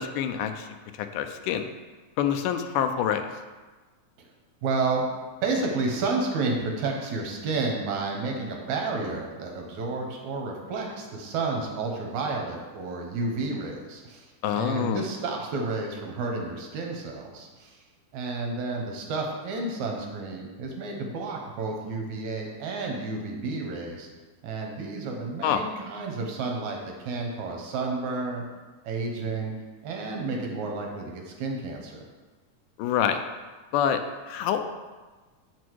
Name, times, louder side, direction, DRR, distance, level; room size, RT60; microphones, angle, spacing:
voice 1, 0.0-1.6 2.2-3.3 14.4-15.1 25.4-25.6 32.8-33.2 33.7-34.0 34.3-34.7, left 9 dB, 90° left, 7 dB, 2.2 m, -26 dB
voice 2, 4.6-5.1 5.4-14.3 14.5-17.8 18.1-24.1 24.4-28.5 28.8-29.5 29.8-32.0, right 3 dB, 70° right, 1 dB, 2.2 m, -31 dB
7.0 x 6.2 x 4.6 m, 1.3 s
omnidirectional pair, 3.6 m